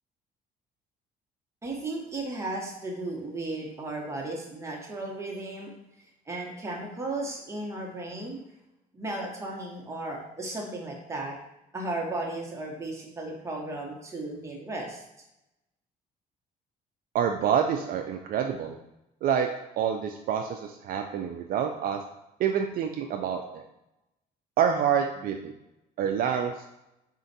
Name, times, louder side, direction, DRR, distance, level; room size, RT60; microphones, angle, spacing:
voice 1, 1.6-5.7 6.3-8.4 8.9-11.3 11.7-15.0, right 2 dB, 15° right, -1 dB, 1.0 m, -35 dB
voice 2, 17.1-18.8 19.2-19.5 19.8-22.0 22.4-23.6 24.6-25.5 26.0-26.5, right 8 dB, 60° right, 4 dB, 0.4 m, -27 dB
4.3 x 2.5 x 4.0 m, 0.88 s
cardioid pair, 110°, 17 cm